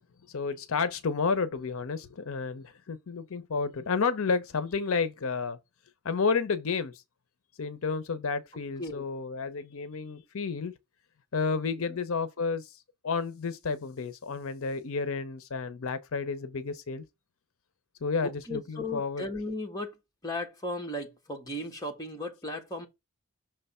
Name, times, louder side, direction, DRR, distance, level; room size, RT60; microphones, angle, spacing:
voice 1, 0.3-5.6 6.0-7.0 7.6-10.7 11.3-17.0 18.0-19.3, left 4 dB, 65° left, 0.6 m, -31 dB
voice 2, 18.2-20.0 20.2-22.9, left 1 dB, 15° left, 1.1 m, -36 dB
6.0 x 3.3 x 5.4 m
head